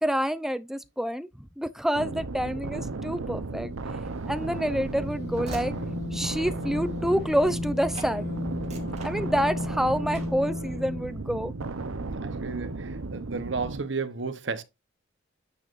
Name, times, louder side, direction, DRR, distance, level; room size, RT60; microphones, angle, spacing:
voice 1, 0.0-1.3 1.6-3.7 4.3-5.7 6.1-8.3 9.0-11.5, equal, ahead, 0.6 m, -27 dB
sound 1, 1.9-13.8, right 3 dB, 85° right, 0.8 m, -35 dB
Train / Slam, 4.0-7.7 7.9-8.2 8.5-9.7 10.1-10.5, right 2 dB, 35° right, 2.5 m, -46 dB
sound 2, 4.3-11.2, left 2 dB, 45° left, 2.6 m, -35 dB
voice 2, 12.2-14.6, right 4 dB, 60° right, 1.0 m, -33 dB
9.4 x 6.4 x 2.5 m
head